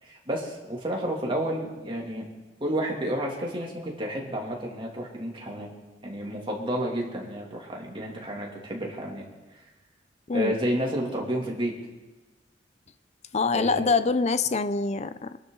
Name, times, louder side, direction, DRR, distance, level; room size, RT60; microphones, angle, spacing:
voice 1, 0.0-2.2 2.6-5.7 6.0-9.2 10.3-11.7 13.5-13.9, right 1 dB, 30° right, -1 dB, 2.7 m, -30 dB
voice 2, 13.3-15.4, left 4 dB, 40° left, 12 dB, 0.6 m, -25 dB
24.0 x 11.5 x 3.9 m, 1.2 s
head